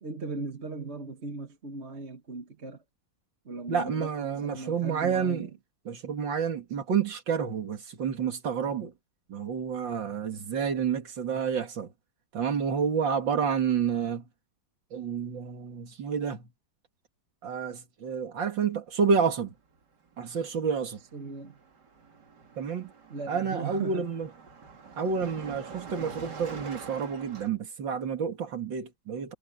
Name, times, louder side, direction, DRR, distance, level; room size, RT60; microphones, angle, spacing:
voice 1, 0.0-2.8 3.5-5.5 21.1-21.6 23.1-24.1, right 3 dB, 40° right, 1.7 m, -38 dB
voice 2, 3.7-5.5 5.9-8.9 9.3-11.9 12.3-14.3 14.9-16.5 17.4-19.5 20.2-21.0 22.6-22.9 23.3-24.3 25.0-29.3, right 6 dB, 85° right, 2.9 m, -29 dB
Car passing by, 20.0-20.2 20.5-27.5, right 5 dB, 65° right, 2.9 m, -45 dB
omnidirectional pair, 2.0 m